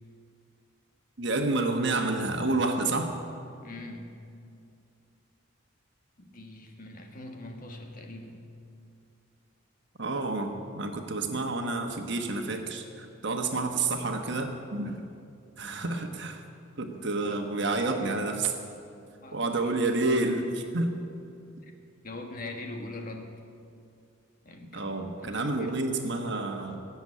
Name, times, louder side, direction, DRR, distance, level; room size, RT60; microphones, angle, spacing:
voice 1, 1.2-3.2 10.0-15.0 15.6-16.4 16.8-18.5 19.3-21.0 24.7-26.8, right 2 dB, 55° right, 4 dB, 1.3 m, -29 dB
voice 2, 3.6-4.3 6.2-8.5 19.2-19.7 22.0-23.4 24.4-24.9 25.2-25.8, left 2 dB, 40° left, 3 dB, 1.6 m, -42 dB
17.0 x 7.1 x 9.9 m, 2.5 s
head